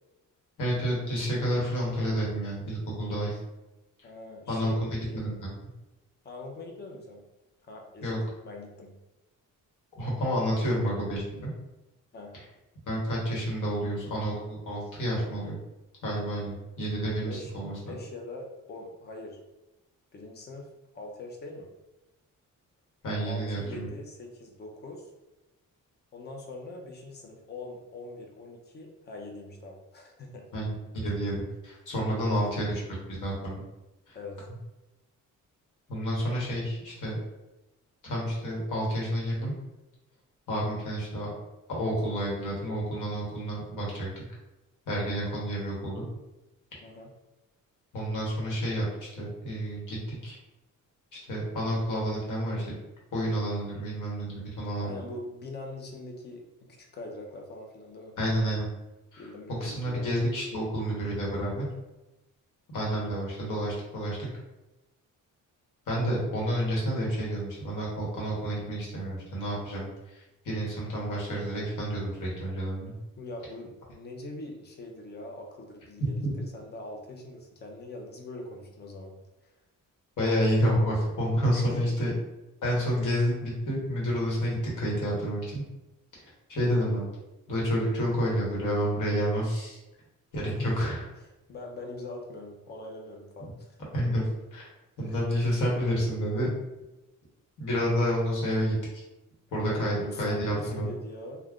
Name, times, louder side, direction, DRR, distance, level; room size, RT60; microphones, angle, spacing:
voice 1, 0.6-3.4 4.5-4.9 5.1-5.3 8.0-8.2 10.0-11.5 12.9-15.5 16.0-17.7 23.0-23.9 30.5-33.6 34.1-34.2 35.9-37.2 38.1-39.5 40.5-41.3 41.7-44.1 44.9-46.0 47.9-50.4 51.3-52.7 53.1-55.0 58.2-58.7 59.1-59.2 59.6-61.6 62.7-64.3 65.9-72.9 76.2-76.3 80.2-82.1 82.6-85.6 86.5-87.0 87.5-89.8 90.3-91.0 93.9-94.2 94.5-94.6 95.0-96.5 97.6-99.0 99.5-100.9, equal, 70° left, -4 dB, 1.2 m, -29 dB
voice 2, 4.0-5.2 6.2-7.2 7.7-8.2 8.4-8.9 12.1-12.4 17.2-17.5 17.8-19.4 20.1-20.7 20.9-21.7 23.2-25.1 26.1-30.5 32.0-32.4 34.1-34.5 46.8-47.1 54.8-56.4 56.8-58.2 59.2-60.2 73.2-79.1 79.4-79.5 81.5-82.0 90.5-90.9 91.5-93.8 95.0-95.2 99.7-101.4, left 2 dB, 30° left, 1 dB, 0.5 m, -42 dB
2.4 x 2.2 x 3.5 m, 0.98 s
wide cardioid pair, 160°, 32 cm